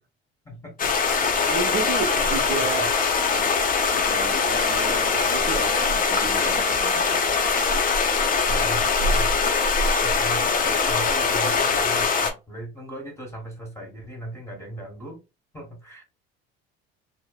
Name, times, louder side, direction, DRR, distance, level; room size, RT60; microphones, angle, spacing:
voice 1, 0.4-0.9 8.5-9.4 10.0-15.2 15.5-16.0, right 1 dB, 10° left, 0 dB, 1.1 m, -38 dB
sound 1, 0.8-12.3, left 4 dB, 25° left, 0.5 m, -22 dB
voice 2, 1.2-3.1 3.9-7.6, right 4 dB, 40° right, 3 dB, 0.9 m, -33 dB
2.6 x 2.1 x 2.3 m, 0.27 s
hypercardioid pair, 75°, 32 cm